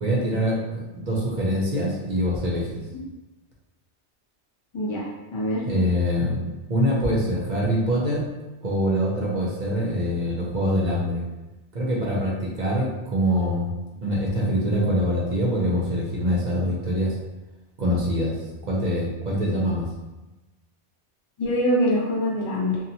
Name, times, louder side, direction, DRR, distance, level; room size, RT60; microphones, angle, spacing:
voice 1, 0.0-2.7 5.6-6.4 6.7-8.2 8.6-11.2 11.7-13.7 14.0-17.1 17.8-18.4 18.7-19.9, equal, 50° right, -4 dB, 0.6 m, -24 dB
voice 2, 4.7-5.0 5.3-5.6 21.4-22.8, equal, 50° left, -4 dB, 0.3 m, -24 dB
2.7 x 2.1 x 2.7 m, 1.1 s
omnidirectional pair, 1.2 m